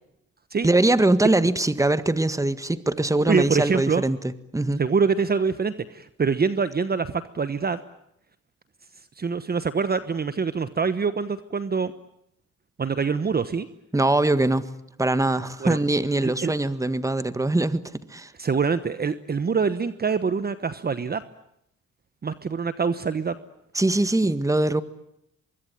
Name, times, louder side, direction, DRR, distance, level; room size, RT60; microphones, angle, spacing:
voice 1, 0.6-4.8 13.9-14.7 15.0-18.3 23.7-24.8, right 2 dB, 10° right, 1.7 m, -22 dB
voice 2, 3.3-4.0 4.8-7.8 9.2-11.9 12.8-13.7 15.6-15.8 16.2-16.5 18.4-21.2 22.2-23.4, right 5 dB, 30° right, 1.2 m, -25 dB
24.5 x 23.0 x 9.2 m
cardioid pair, 90°, 30 cm